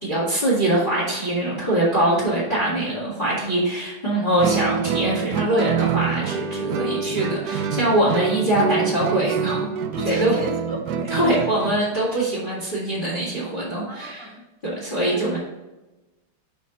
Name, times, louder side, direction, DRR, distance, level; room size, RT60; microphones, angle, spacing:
voice 1, 0.0-9.7 10.0-10.3 11.1-14.3 14.8-15.4, right 1 dB, 25° left, -6 dB, 2.1 m, -23 dB
Guitar, 4.4-11.9, right 7 dB, 75° right, 0.8 m, -26 dB
voice 2, 6.8-7.1 9.9-11.5 13.9-14.4 15.1-15.3, right 1 dB, 15° right, -1 dB, 1.4 m, -34 dB
7.8 x 5.2 x 3.9 m, 1.1 s
omnidirectional pair, 2.2 m